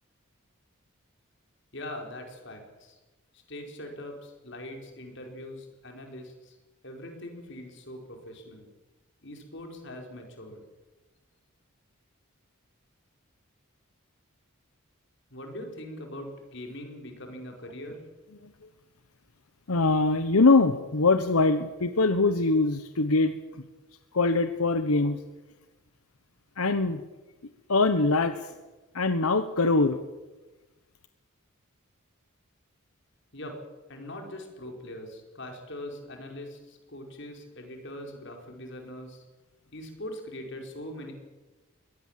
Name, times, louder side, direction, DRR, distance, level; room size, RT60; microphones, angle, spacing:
voice 1, 1.7-3.0 3.3-6.6 6.8-8.7 9.2-10.6 15.3-18.0 33.3-33.6 33.9-39.2 39.7-41.1, left 1 dB, 55° left, 3 dB, 5.1 m, -42 dB
voice 2, 19.7-23.6 24.1-25.2 26.6-27.0 27.7-28.5 28.9-30.0, left 3 dB, 85° left, 10 dB, 1.1 m, -23 dB
22.5 x 18.5 x 7.6 m, 1.2 s
head